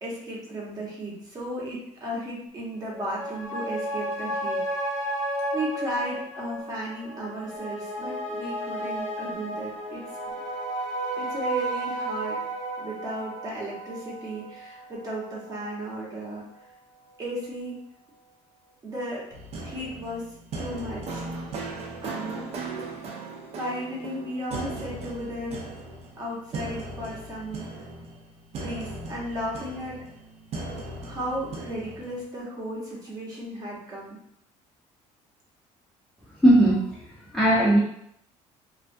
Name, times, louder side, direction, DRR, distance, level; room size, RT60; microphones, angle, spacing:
voice 1, 0.0-4.9 5.5-10.0 11.2-12.4 12.8-16.4 17.2-17.8 18.8-19.3 19.6-21.2 22.0-22.5 23.6-25.7 26.2-27.8 28.5-30.0 31.0-34.2, equal, 30° right, -5 dB, 0.9 m, -35 dB
sound 1, 2.8-15.7 16.0-16.1, right 1 dB, 80° left, 1.0 m, -33 dB
sound 2, 19.3-32.2, right 2 dB, 50° right, 0.5 m, -38 dB
voice 2, 36.4-36.8 37.3-37.8, right 1 dB, 5° left, -8 dB, 0.4 m, -17 dB
2.4 x 2.2 x 2.5 m, 0.72 s
cardioid pair, 130°, 13 cm